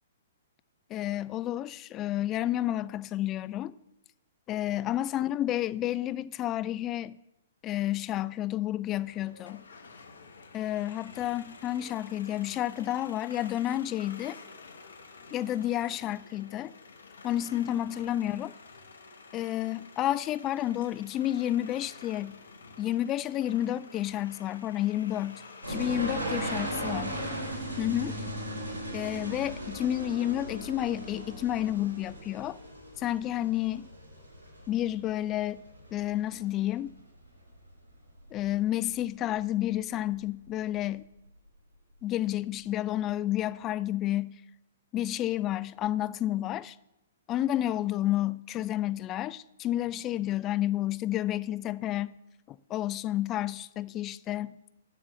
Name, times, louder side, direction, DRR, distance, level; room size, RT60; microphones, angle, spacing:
voice 1, 0.9-3.7 4.5-7.2 7.6-9.6 10.5-14.4 15.3-16.7 17.2-18.5 19.3-22.4 22.8-25.4 25.7-27.2 27.8-28.2 28.9-32.6 33.0-33.9 34.7-35.6 35.9-36.9 38.3-41.0 42.0-44.3 44.9-46.8 47.3-52.2 52.5-54.6, left 13 dB, 25° left, 0.3 m, -30 dB
sound 1, 9.0-26.6, left 4 dB, 65° left, 1.0 m, -50 dB
sound 2, 25.6-37.0 37.2-37.8 38.2-39.0 39.3-39.4 40.1-40.2 40.5-40.6, right 1 dB, 75° right, 3.0 m, -37 dB
7.7 x 6.2 x 7.2 m
figure-of-eight pair, 115°, 0 cm